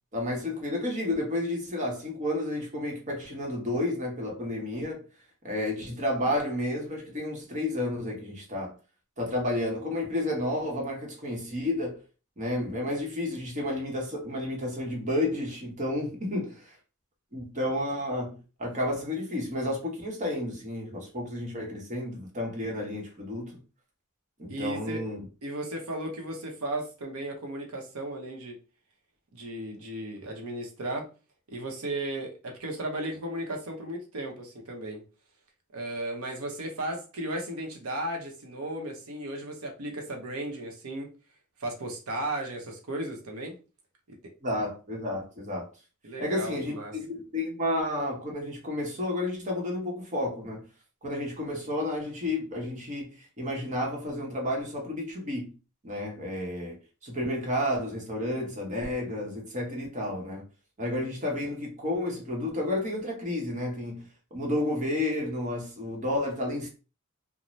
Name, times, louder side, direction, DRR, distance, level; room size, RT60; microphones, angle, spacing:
voice 1, 0.1-5.0 5.4-8.7 9.2-12.0 12.4-16.7 17.3-23.6 24.4-25.3 44.4-45.7 46.2-50.6 51.0-55.5 55.8-60.4 60.8-64.0 64.3-66.7, left 1 dB, 35° right, 1.0 m, -31 dB
voice 2, 24.5-25.0 25.4-28.6 29.3-31.1 31.5-35.0 35.7-41.1 41.6-43.6 46.0-46.9, right 1 dB, 80° right, 0.8 m, -35 dB
2.6 x 2.1 x 3.1 m
head